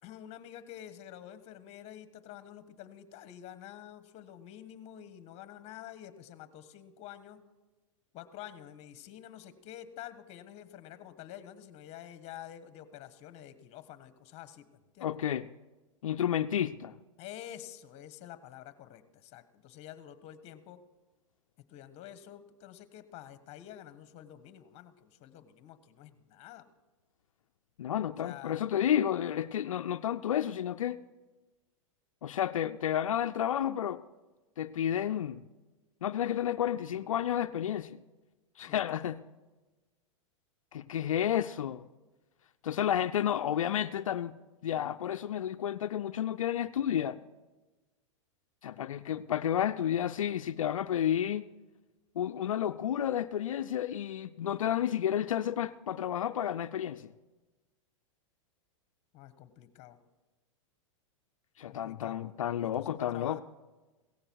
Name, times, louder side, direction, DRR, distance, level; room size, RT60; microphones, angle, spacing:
voice 1, 0.0-7.4 8.1-14.6 14.9-15.1 17.2-20.8 21.7-26.7 28.2-28.7 38.6-39.1 59.1-60.0 61.6-63.4, left 11 dB, 40° left, 1.3 m, -48 dB
voice 2, 15.0-15.5 16.0-16.9 27.8-31.0 32.2-34.0 34.6-35.4 36.0-38.0 38.6-39.2 40.7-41.8 42.6-44.4 44.6-47.2 48.6-51.4 52.2-57.1 61.6-63.4, left 10 dB, 85° left, 0.5 m, -31 dB
17.0 x 14.5 x 4.7 m
hypercardioid pair, 115°, 17 cm